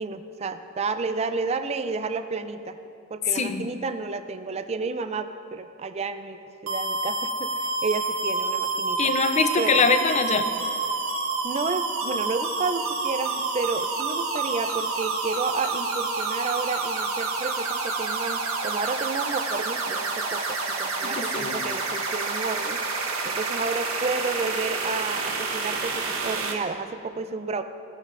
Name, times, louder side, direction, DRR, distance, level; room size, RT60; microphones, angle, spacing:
voice 1, 0.0-2.8 3.1-9.2 9.6-9.8 11.4-27.6, right 4 dB, 30° right, 10 dB, 0.4 m, -31 dB
voice 2, 3.3-3.7 9.0-10.5 21.0-21.6, left 5 dB, 35° left, 9 dB, 0.5 m, -23 dB
sound 1, 6.7-26.5, right 3 dB, 85° right, 1.1 m, -28 dB
16.0 x 8.6 x 2.5 m, 2.7 s
head